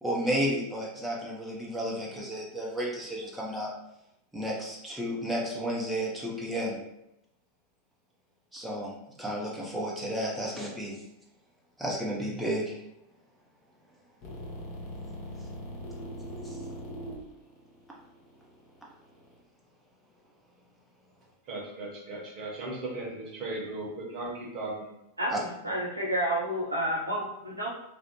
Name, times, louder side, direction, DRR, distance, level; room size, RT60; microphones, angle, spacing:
voice 1, 0.0-3.7 4.3-6.8 8.5-8.9 9.2-11.0 11.8-12.8 16.4-16.6 25.3-25.4, equal, 5° right, -4 dB, 0.5 m, -32 dB
sound 1, 14.2-19.3, equal, 40° left, 0.8 m, -41 dB
voice 2, 21.5-24.9, right 2 dB, 35° right, -2 dB, 0.8 m, -37 dB
voice 3, 25.2-27.7, right 1 dB, 85° right, -4 dB, 0.5 m, -30 dB
2.4 x 2.0 x 2.9 m, 0.86 s
figure-of-eight pair, 90°, 0 cm